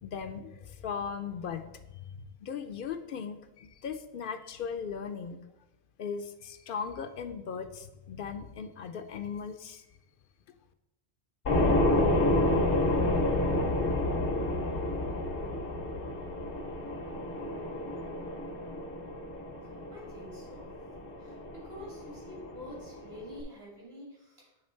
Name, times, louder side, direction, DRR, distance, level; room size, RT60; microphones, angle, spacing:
voice 1, 0.0-5.4 6.0-9.8, left 6 dB, 60° left, 9 dB, 0.6 m, -38 dB
sound 1, 11.4-23.4, left 1 dB, 90° left, 1.3 m, -30 dB
voice 2, 19.9-20.7 21.2-24.6, left 1 dB, 65° right, -4 dB, 3.1 m, -47 dB
8.9 x 3.6 x 4.3 m, 0.95 s
omnidirectional pair, 1.1 m